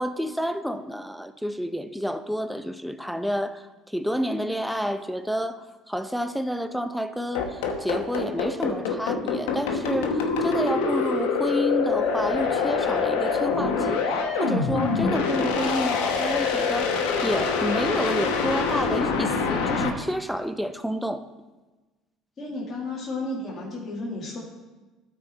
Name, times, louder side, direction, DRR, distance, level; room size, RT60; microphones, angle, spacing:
voice 1, 0.0-21.3, equal, ahead, 11 dB, 0.6 m, -29 dB
sound 1, 7.3-19.9, left 5 dB, 85° left, 1.0 m, -25 dB
sound 2, 11.9-19.0, left 5 dB, 70° left, 1.5 m, -39 dB
voice 2, 22.4-24.4, left 2 dB, 40° left, -6 dB, 2.1 m, -32 dB
12.5 x 4.6 x 4.4 m, 1.2 s
supercardioid pair, 85°, 0 cm